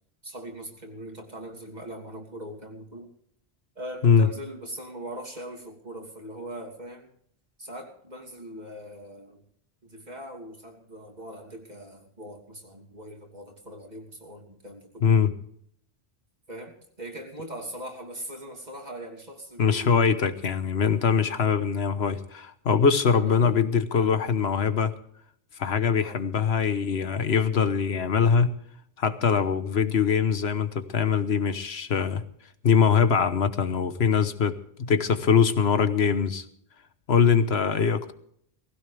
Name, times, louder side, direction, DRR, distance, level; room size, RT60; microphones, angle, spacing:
voice 1, 0.2-3.1 3.7-7.1 7.6-9.4 9.8-15.2 16.5-20.3 23.1-23.6 23.9-24.2 26.0-26.2, right 1 dB, 45° right, 1 dB, 3.1 m, -41 dB
voice 2, 15.0-15.3 19.6-24.9 25.6-28.5 29.0-32.2 32.6-36.4 37.1-38.1, left 6 dB, 85° left, 11 dB, 1.4 m, -22 dB
19.5 x 16.5 x 3.4 m, 0.67 s
omnidirectional pair, 1.0 m